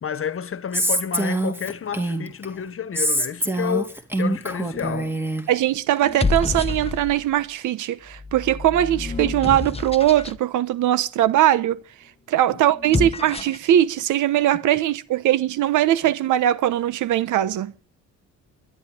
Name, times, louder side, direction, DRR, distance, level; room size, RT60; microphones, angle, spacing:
voice 1, 0.0-5.1 12.5-12.6, left 8 dB, 45° left, 1.4 m, -30 dB
Female speech woman speaking, 0.7-2.5 3.0-5.4, right 1 dB, 5° right, 2.4 m, -24 dB
sound 1, 4.7-5.1 6.0-7.3 8.1-10.4 12.7-13.7, left 3 dB, 20° left, 1.0 m, -28 dB
voice 2, 5.5-11.8 12.3-17.7, right 12 dB, 85° right, 1.0 m, -20 dB
22.5 x 11.0 x 5.1 m
cardioid pair, 90°, 30 cm